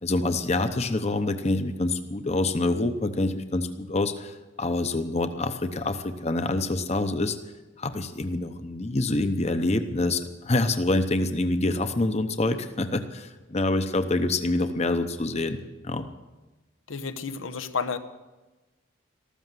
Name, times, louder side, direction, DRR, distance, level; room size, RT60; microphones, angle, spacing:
voice 1, 0.0-7.4 7.8-15.6 15.8-16.1, left 2 dB, 35° left, 9 dB, 0.8 m, -26 dB
voice 2, 16.9-18.0, left 5 dB, 85° left, 9 dB, 1.0 m, -31 dB
14.0 x 13.5 x 7.5 m, 1.1 s
head